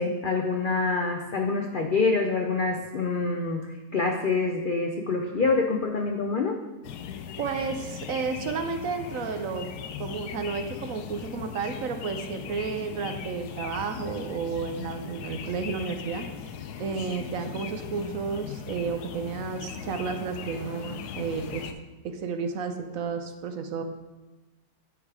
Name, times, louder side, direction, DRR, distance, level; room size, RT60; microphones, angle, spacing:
voice 1, 0.0-6.6, left 3 dB, 70° left, 3 dB, 0.4 m, -26 dB
sound 1, 6.8-21.7, left 8 dB, 90° left, 1.2 m, -39 dB
voice 2, 7.4-9.7 10.0-16.3 16.8-21.7 22.0-23.8, right 5 dB, 70° right, 6 dB, 1.0 m, -32 dB
9.0 x 4.8 x 4.8 m, 1.1 s
omnidirectional pair, 1.6 m